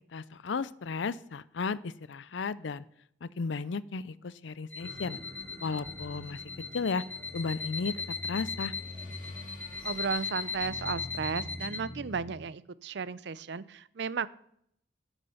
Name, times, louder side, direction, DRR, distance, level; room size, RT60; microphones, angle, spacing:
voice 1, 0.1-2.8 3.2-5.2 5.6-6.4 6.7-7.0 7.3-8.7, left 4 dB, 75° left, 19 dB, 0.5 m, -34 dB
sound 1, 4.7-11.8, left 4 dB, 10° left, 1.3 m, -38 dB
sound 2, 4.8-12.3, left 1 dB, 15° right, 1.8 m, -45 dB
sound 3, 7.1-12.3, left 4 dB, 45° left, 2.1 m, -58 dB
voice 2, 9.8-14.3, right 5 dB, 65° right, 18 dB, 0.5 m, -34 dB
11.5 x 8.1 x 5.7 m, 0.71 s
head